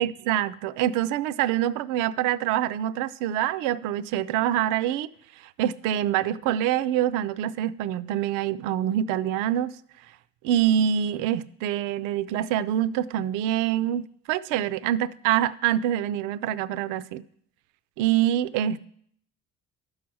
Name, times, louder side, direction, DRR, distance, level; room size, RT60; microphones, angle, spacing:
voice 1, 0.0-5.1 5.6-9.7 10.4-17.2 18.0-18.8, right 11 dB, 90° right, 0.5 m, -25 dB
12.5 x 4.8 x 6.1 m
cardioid pair, 95°, 30 cm